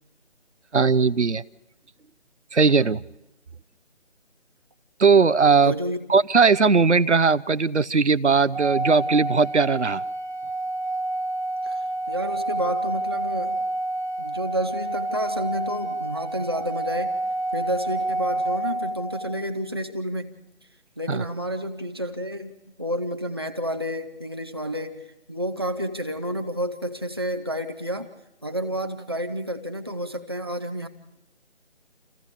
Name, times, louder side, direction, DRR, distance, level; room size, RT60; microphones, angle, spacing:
voice 1, 0.7-1.4 2.5-3.0 5.0-5.7 6.1-10.0 21.1-21.2, right 5 dB, 80° right, 18 dB, 0.7 m, -19 dB
voice 2, 5.6-6.0 11.6-13.7 14.2-17.1 17.5-20.3 21.0-22.5 22.8-28.1 28.4-30.9, equal, 20° right, 6 dB, 0.7 m, -30 dB
Organ, 8.5-19.4, right 2 dB, 40° right, 1.5 m, -28 dB
28.5 x 15.0 x 6.8 m, 0.96 s
figure-of-eight pair, 155°, 35 cm